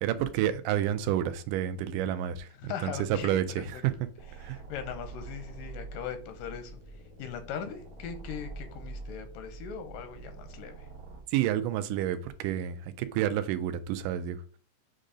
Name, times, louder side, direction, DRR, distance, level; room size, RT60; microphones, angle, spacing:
voice 1, 0.0-3.9 4.4-4.6 11.3-14.6, right 11 dB, 85° right, 2.1 m, -30 dB
voice 2, 2.6-3.8 4.4-10.9, left 8 dB, 90° left, 2.4 m, -40 dB
sound 1, 4.2-11.2, right 3 dB, 45° right, 0.9 m, -45 dB
7.4 x 2.6 x 4.9 m
omnidirectional pair, 3.7 m